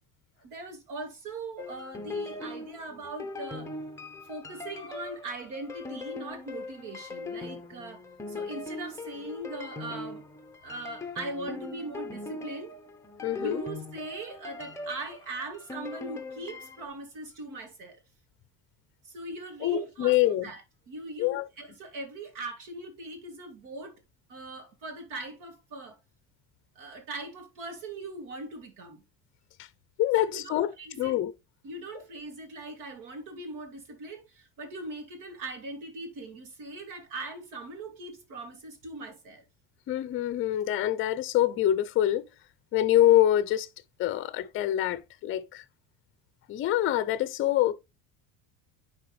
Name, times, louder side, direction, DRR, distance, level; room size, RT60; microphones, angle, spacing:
voice 1, 0.4-3.8 4.2-10.2 10.6-12.7 13.4-18.0 19.0-20.6 20.9-24.0 24.3-26.0 26.8-29.0 30.2-31.2 31.6-39.4, right 2 dB, 65° right, 2.5 m, -40 dB
sound 1, 1.6-16.9, left 2 dB, 10° left, 0.8 m, -40 dB
voice 2, 13.2-13.6 19.6-20.4 21.2-21.5 30.0-30.7 31.0-31.3 39.9-42.2 42.7-43.7 44.0-45.6 46.5-47.7, left 13 dB, 35° left, 0.6 m, -25 dB
9.9 x 4.3 x 3.2 m
cardioid pair, 160°, 34 cm